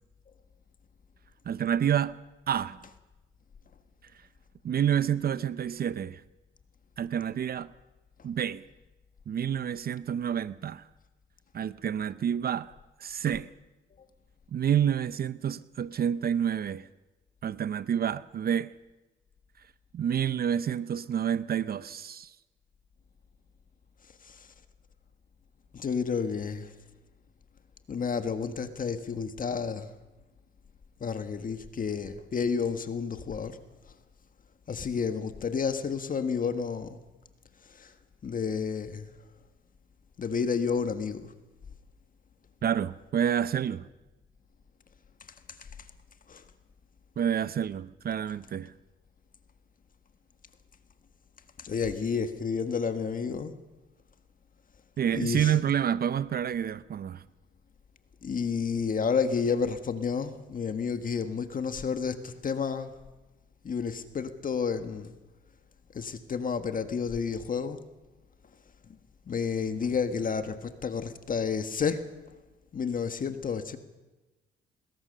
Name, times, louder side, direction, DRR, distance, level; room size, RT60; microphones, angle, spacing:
voice 1, 1.5-2.2 2.5-2.8 4.6-6.2 7.0-7.7 8.2-8.7 9.3-10.8 11.5-12.7 13.0-13.5 14.5-16.9 17.4-18.7 19.9-22.3 42.6-43.9 47.2-48.7 55.0-57.2, right 9 dB, 50° right, 0.7 m, -28 dB
voice 2, 25.7-26.7 27.9-29.9 31.0-33.6 34.7-37.0 37.6-37.9 38.2-39.1 40.2-41.3 45.6-45.7 46.3-46.4 51.6-53.5 55.1-55.6 58.2-63.0 63.6-65.1 65.9-67.8 68.9-69.0 69.3-72.0 72.7-73.8, left 6 dB, 45° left, 1.6 m, -31 dB
23.0 x 21.0 x 6.7 m
cardioid pair, 90°, 20 cm